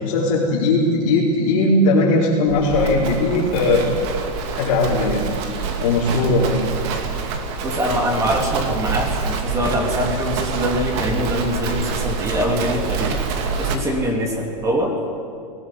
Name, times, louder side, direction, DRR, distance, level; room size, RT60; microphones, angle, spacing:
voice 1, 0.0-3.9 4.5-5.3 5.8-6.6, left 2 dB, 55° left, -7 dB, 4.9 m, -18 dB
Livestock farm animals working animals, 2.5-13.8, right 5 dB, 40° right, 2.5 m, -26 dB
voice 2, 7.6-13.2 13.6-15.0, equal, 15° right, 2 dB, 3.0 m, -23 dB
20.5 x 18.5 x 9.9 m, 2.4 s
supercardioid pair, 165°, 21 cm